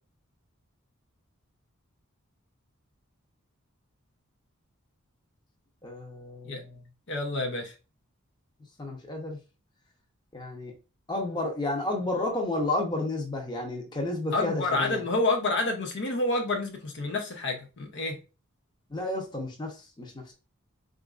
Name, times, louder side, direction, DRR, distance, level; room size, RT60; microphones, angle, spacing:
voice 1, 5.8-6.9 8.8-9.4 10.3-10.7 11.1-15.0 18.9-20.3, left 2 dB, 20° left, 0.8 m, -31 dB
voice 2, 7.1-7.7 14.3-18.2, left 2 dB, 55° left, 0.7 m, -28 dB
4.1 x 2.5 x 2.4 m
head